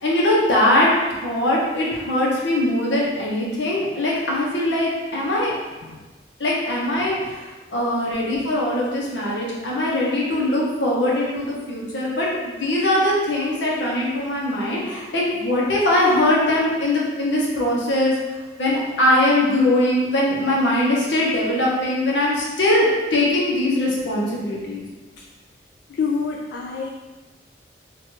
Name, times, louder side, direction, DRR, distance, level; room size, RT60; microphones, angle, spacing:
voice 1, 0.0-5.5 6.4-7.4 7.7-18.1 18.6-24.8, left 1 dB, 85° left, -4 dB, 1.0 m, -21 dB
voice 2, 25.9-26.9, left 5 dB, 70° left, 0 dB, 0.3 m, -26 dB
3.2 x 2.5 x 4.5 m, 1.2 s
head